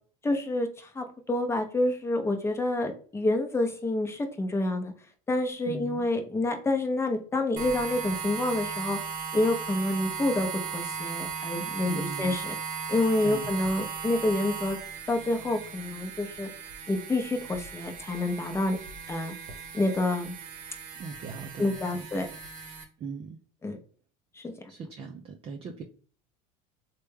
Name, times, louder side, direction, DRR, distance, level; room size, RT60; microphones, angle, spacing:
voice 1, 0.2-0.7 0.9-4.9 5.3-9.0 9.3-12.6 12.9-14.8 15.1-16.5 16.9-18.8 19.1-19.3 19.7-20.3 21.6-22.3 23.6-23.8 24.4-24.5, left 2 dB, 15° left, 4 dB, 0.6 m, -28 dB
voice 2, 5.7-6.1 11.8-12.4 13.2-13.6 21.0-22.1 23.0-23.4 24.7-25.8, right 4 dB, 35° right, 3 dB, 0.4 m, -39 dB
sound 1, 7.6-22.8, right 6 dB, 50° right, 0.8 m, -37 dB
3.2 x 2.2 x 3.2 m, 0.42 s
supercardioid pair, 105°, 17 cm